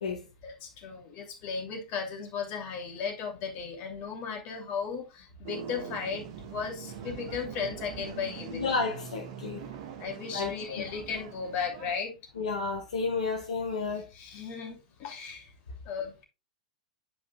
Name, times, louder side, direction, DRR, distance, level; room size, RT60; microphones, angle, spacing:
voice 1, 0.4-8.8 10.0-12.2 14.1-15.5 15.8-16.2, left 6 dB, 40° left, 2.7 m, -36 dB
sound 1, 5.4-12.0, right 7 dB, 55° right, 1.5 m, -43 dB
voice 2, 8.5-9.7 10.3-10.9 12.4-14.1, left 4 dB, 70° left, 1.5 m, -31 dB
10.0 x 5.3 x 2.3 m
figure-of-eight pair, 100°, 4 cm